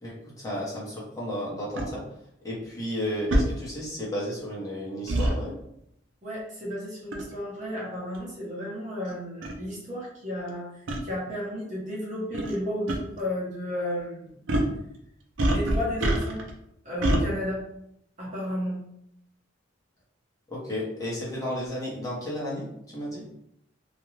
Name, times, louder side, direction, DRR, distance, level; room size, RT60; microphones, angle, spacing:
voice 1, 0.0-2.0 2.4-5.6 20.5-23.3, equal, 20° left, -6 dB, 0.8 m, -33 dB
sound 1, 1.8-1.9 3.3-3.5 5.1-5.3 7.1-7.3 8.1-8.2 9.1-9.2 9.4-9.6 10.9-11.0 12.3-12.6 12.9-13.0 14.5-14.7 15.4-16.5 17.0-17.2, right 1 dB, 80° right, 0.5 m, -24 dB
voice 2, 6.2-14.4 15.5-16.4 16.8-17.6 18.2-18.8, left 1 dB, 40° right, -5 dB, 0.9 m, -33 dB
2.4 x 2.2 x 3.0 m, 0.75 s
head